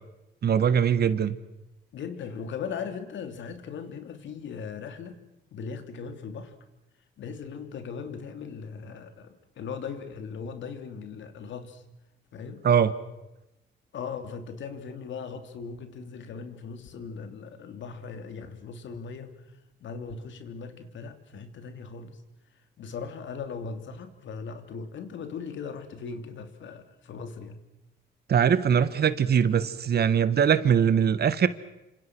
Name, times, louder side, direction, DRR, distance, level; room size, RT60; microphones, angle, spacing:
voice 1, 0.4-1.4 12.6-12.9 28.3-31.5, right 8 dB, 55° right, 14 dB, 1.6 m, -22 dB
voice 2, 1.9-5.2 5.5-6.5 7.2-11.8 12.3-12.7 13.9-19.4 19.8-22.2 22.8-27.6, left 5 dB, 70° left, 7 dB, 3.1 m, -38 dB
28.5 x 26.5 x 6.3 m, 0.96 s
cardioid pair, 90°, 20 cm